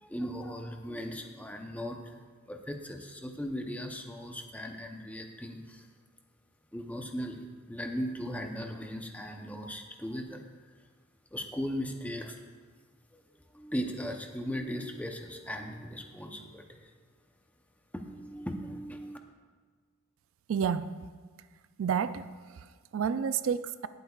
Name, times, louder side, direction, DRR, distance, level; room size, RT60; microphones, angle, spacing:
voice 1, 0.0-2.0 2.5-5.8 6.7-10.4 11.3-12.4 13.1-13.2 13.5-16.8 17.9-19.2, equal, 5° left, 3 dB, 0.7 m, -38 dB
voice 2, 20.5-20.9 21.8-23.9, right 7 dB, 65° right, 13 dB, 0.3 m, -30 dB
18.0 x 8.0 x 2.4 m, 1.5 s
head